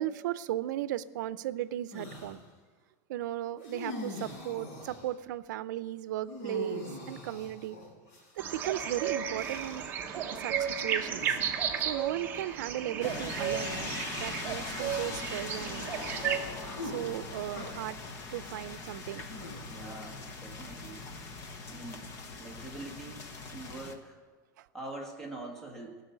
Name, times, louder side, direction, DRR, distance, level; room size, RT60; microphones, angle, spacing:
voice 1, 0.0-2.4 3.1-7.8 8.4-9.8 10.3-11.4 11.8-15.9 16.8-18.0 18.3-19.3 24.6-24.7, right 13 dB, 80° right, 16 dB, 0.6 m, -36 dB
sound 1, 1.9-2.4 3.6-5.1 6.3-8.6 9.4-10.0 11.1-11.6 12.4-12.6 14.7-15.4 16.6-17.7 19.3-20.1, left 1 dB, 55° left, 5.5 m, -43 dB
sound 2, 8.4-16.4, right 8 dB, 20° right, 1.0 m, -34 dB
sound 3, 13.0-23.9, left 3 dB, 30° left, 1.1 m, -41 dB
voice 2, 19.7-21.1 21.7-22.0 22.4-24.2 24.7-26.0, right 2 dB, 5° left, 0 dB, 1.6 m, -44 dB
16.0 x 7.0 x 9.4 m, 1.4 s
supercardioid pair, 180°, 10 cm